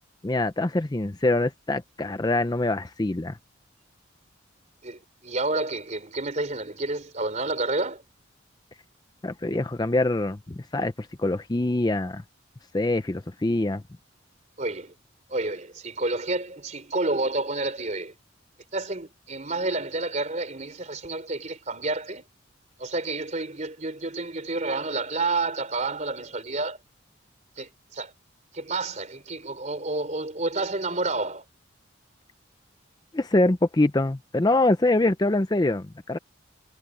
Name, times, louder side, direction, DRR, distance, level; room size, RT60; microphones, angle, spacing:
voice 1, 0.2-3.4 9.2-12.2 12.7-13.8 33.1-36.2, left 2 dB, 20° left, 0.5 m, -24 dB
voice 2, 4.8-8.0 14.6-14.9 15.3-18.1 18.7-22.2 22.8-26.8 27.6-28.1 28.5-31.4, right 2 dB, 35° right, 3.8 m, -29 dB
head